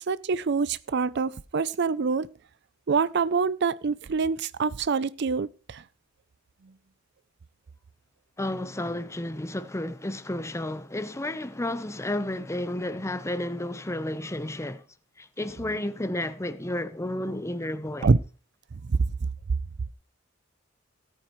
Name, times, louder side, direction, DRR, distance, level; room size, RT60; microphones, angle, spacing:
voice 1, 0.0-2.3 2.9-5.8 18.0-18.2 18.8-19.0, right 4 dB, 60° right, 0.5 m, -25 dB
voice 2, 8.4-14.8 15.2-18.1, left 1 dB, 15° left, 0.8 m, -32 dB
17.5 x 9.1 x 3.1 m
head